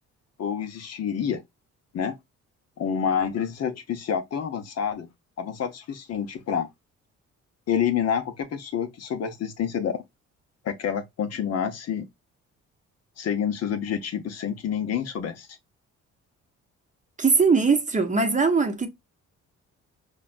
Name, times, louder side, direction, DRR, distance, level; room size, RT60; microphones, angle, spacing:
voice 1, 0.4-1.4 1.9-2.1 2.8-5.1 5.4-6.7 7.7-10.0 10.6-12.1 13.2-15.5, left 8 dB, 55° left, 0.7 m, -28 dB
voice 2, 17.2-18.9, right 4 dB, 25° right, 0.7 m, -20 dB
4.9 x 2.3 x 2.4 m
cardioid pair, 90°, 30 cm